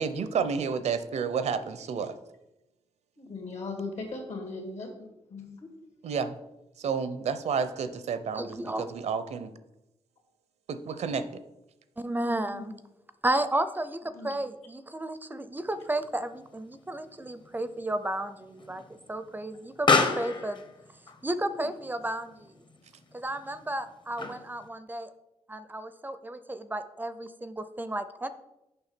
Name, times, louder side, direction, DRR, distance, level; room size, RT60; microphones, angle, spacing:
voice 1, 0.0-2.2 6.0-6.3 6.8-9.5 10.7-11.4, right 6 dB, 75° right, 12 dB, 0.6 m, -30 dB
voice 2, 3.2-5.7 12.5-12.8 14.1-14.5, left 3 dB, 75° left, 2 dB, 1.9 m, -39 dB
voice 3, 8.3-8.9 12.0-12.7 13.2-20.6 21.2-22.6 23.1-25.1 25.5-28.3, right 1 dB, 15° right, 12 dB, 0.4 m, -33 dB
Explosion, 15.7-24.7, left 4 dB, 45° left, 0.8 m, -33 dB
6.8 x 5.5 x 4.3 m, 0.94 s
cardioid pair, 85°, 11 cm